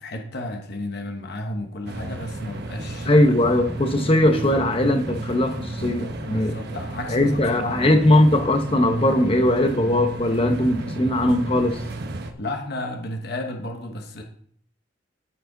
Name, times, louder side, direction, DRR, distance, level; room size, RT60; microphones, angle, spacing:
voice 1, 0.0-3.2 6.2-8.0 12.4-14.2, left 1 dB, 55° left, 1.0 m, -33 dB
sound 1, 1.9-12.3, right 2 dB, 55° right, 1.0 m, -33 dB
voice 2, 3.1-6.6 7.1-11.8, left 1 dB, 30° left, 0.9 m, -20 dB
13.5 x 4.8 x 3.9 m
head